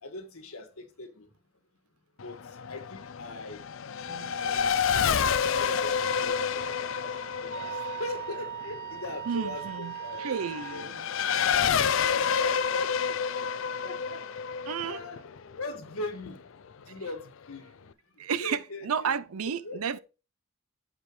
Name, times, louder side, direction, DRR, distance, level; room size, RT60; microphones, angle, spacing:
voice 1, 0.0-1.3 2.2-3.6 4.4-4.8 5.4-10.4 10.7-13.5 13.8-14.3 14.5-15.3 15.6-16.5 16.9-17.9 18.4-19.1 19.6-20.0, left 2 dB, 85° left, 1.7 m, -41 dB
Race car auto racing / Accelerating revving vroom, 2.2-16.3, left 7 dB, 65° left, 0.5 m, -29 dB
voice 2, 4.1-4.5 9.3-11.1 11.6-11.9 14.7-15.0 18.2-20.0, right 6 dB, 90° right, 0.5 m, -33 dB
Wind instrument woodwind instrument, 6.5-10.9, right 9 dB, 40° left, 1.7 m, -39 dB
15.0 x 5.0 x 3.2 m
head